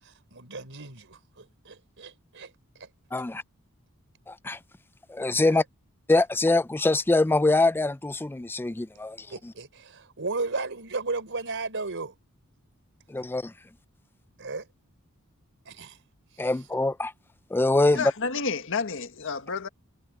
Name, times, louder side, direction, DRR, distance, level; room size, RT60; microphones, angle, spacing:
voice 1, 0.0-2.9 5.4-5.6 9.3-12.1 13.2-13.3 14.4-14.7 15.6-16.0 16.3-16.6 17.8-18.0, right 3 dB, 60° right, 4.6 m, -35 dB
voice 2, 3.1-3.4 4.3-4.6 5.1-5.6 6.1-9.3 13.1-13.5 16.4-17.1 17.5-18.1, left 2 dB, 10° left, 0.4 m, -24 dB
voice 3, 17.9-19.7, left 5 dB, 65° left, 1.7 m, -30 dB
head